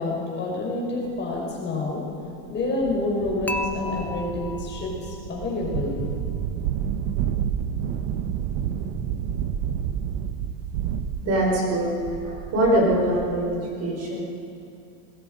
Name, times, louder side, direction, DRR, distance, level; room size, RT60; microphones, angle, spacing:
voice 1, 0.0-2.0 2.5-5.9, left 2 dB, 25° left, -2 dB, 5.5 m, -28 dB
sound 1, 1.4-1.5 2.1-2.2 2.6-13.6, right 9 dB, 65° right, 1.2 m, -30 dB
Dishes pots and pans / Chink clink, 3.5-5.6, left 2 dB, 5° left, 0.5 m, -34 dB
voice 2, 11.2-14.2, right 1 dB, 35° right, -2 dB, 5.1 m, -23 dB
25.0 x 20.5 x 5.3 m, 2.6 s
cardioid pair, 160°, 43 cm